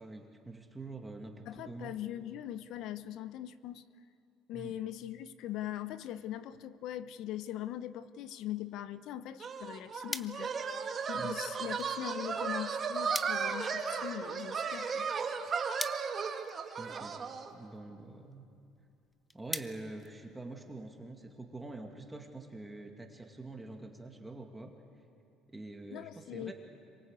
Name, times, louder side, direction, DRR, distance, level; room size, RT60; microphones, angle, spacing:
voice 1, 0.0-1.9 4.5-4.8 11.2-11.4 16.8-17.2 17.5-18.4 19.3-24.7 25.5-26.5, right 2 dB, 10° right, 2 dB, 2.4 m, -45 dB
voice 2, 1.5-3.8 4.5-10.5 11.1-15.1 25.9-26.5, left 12 dB, 65° left, 14 dB, 0.9 m, -41 dB
sound 1, 9.4-20.8, left 2 dB, 10° left, 0.9 m, -47 dB
sound 2, 9.4-17.5, right 5 dB, 35° right, 1.9 m, -35 dB
26.5 x 23.5 x 8.2 m, 2.5 s
supercardioid pair, 100°, 0 cm